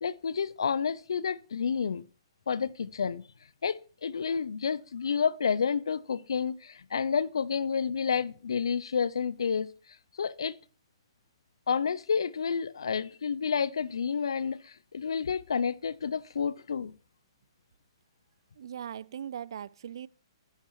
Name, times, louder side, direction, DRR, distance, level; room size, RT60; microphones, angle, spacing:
voice 1, 0.0-2.1 2.5-3.2 3.6-9.7 10.2-10.5 11.7-16.9, left 6 dB, 70° left, 0.5 m, -30 dB
voice 2, 18.6-20.1, right 9 dB, 60° right, 0.4 m, -39 dB
13.0 x 9.6 x 3.1 m
figure-of-eight pair, 125°, 3 cm